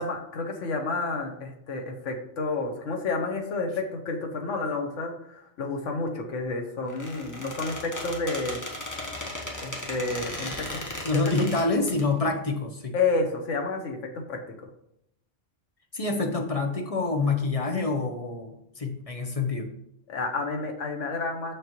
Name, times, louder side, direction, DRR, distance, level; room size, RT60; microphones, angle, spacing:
voice 1, 0.0-8.6 9.6-10.8 11.1-11.2 12.9-14.0 14.3-14.5 20.1-21.5, left 3 dB, 80° left, 3 dB, 1.4 m, -30 dB
Squeak, 6.9-12.0, left 1 dB, 15° left, 1.0 m, -36 dB
voice 2, 11.0-12.9 15.9-19.7, left 3 dB, 35° left, 3 dB, 0.7 m, -27 dB
6.5 x 6.4 x 3.0 m, 0.76 s
omnidirectional pair, 1.3 m